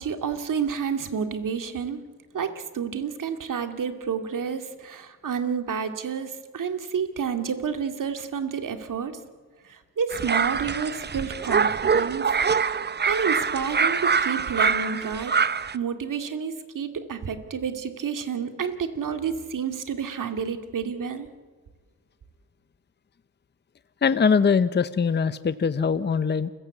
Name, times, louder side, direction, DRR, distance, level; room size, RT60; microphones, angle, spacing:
voice 1, 0.0-2.0 2.3-9.1 9.6-12.3 13.1-15.3 15.7-21.3, right 6 dB, 55° right, 7 dB, 2.4 m, -30 dB
sound 1, 10.1-15.8, right 5 dB, 25° right, 0.8 m, -24 dB
voice 2, 24.0-26.5, left 5 dB, 30° left, 14 dB, 0.8 m, -22 dB
29.0 x 16.0 x 8.3 m, 1.4 s
supercardioid pair, 65°, 37 cm